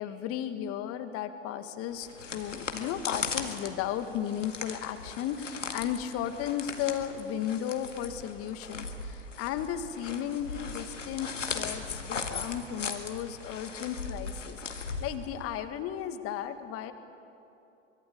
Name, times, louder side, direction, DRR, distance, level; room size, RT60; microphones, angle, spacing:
voice 1, 0.0-16.9, left 10 dB, 40° left, 10 dB, 1.8 m, -35 dB
sound 1, 1.9-15.6, left 4 dB, 80° left, 2.0 m, -38 dB
24.0 x 22.5 x 8.4 m, 2.7 s
figure-of-eight pair, 90°, 36 cm